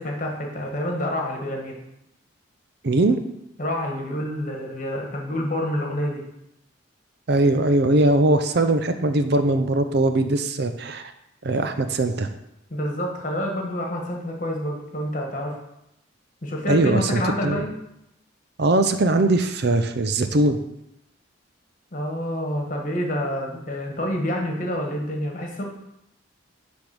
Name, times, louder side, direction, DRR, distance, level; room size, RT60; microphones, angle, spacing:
voice 1, 0.0-1.7 3.6-6.2 12.7-15.6 16.4-17.7 21.9-25.6, left 1 dB, 40° left, 1 dB, 1.6 m, -28 dB
voice 2, 2.8-3.2 7.3-11.0 11.4-12.3 16.7-17.6 18.6-20.6, right 2 dB, 55° right, 8 dB, 0.6 m, -20 dB
10.0 x 3.6 x 6.1 m, 0.83 s
head